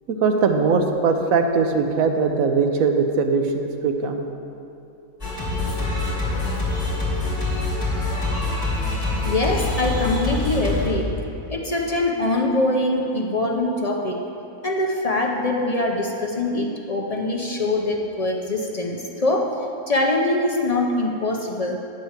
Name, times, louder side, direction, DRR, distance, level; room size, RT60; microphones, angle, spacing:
voice 1, 0.1-4.2, right 4 dB, 80° right, 5 dB, 1.2 m, -20 dB
Singing, 5.2-10.9, left 2 dB, 25° left, 2.4 m, -25 dB
voice 2, 9.2-11.2 11.5-14.2 14.6-19.6 19.9-21.8, left 2 dB, 40° left, 1 dB, 0.5 m, -23 dB
8.9 x 5.4 x 7.1 m, 2.7 s
omnidirectional pair, 1.5 m